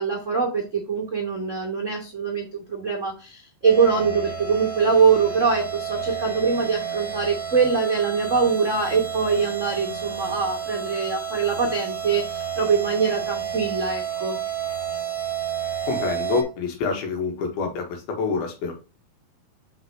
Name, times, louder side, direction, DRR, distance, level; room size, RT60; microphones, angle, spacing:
voice 1, 0.0-14.4, right 5 dB, 65° right, -1 dB, 0.7 m, -23 dB
sound 1, 3.6-16.4, right 8 dB, 10° left, 1.4 m, -31 dB
voice 2, 15.9-18.7, left 4 dB, 80° left, 3 dB, 3.5 m, -27 dB
5.9 x 5.6 x 3.1 m, 0.33 s
omnidirectional pair, 4.4 m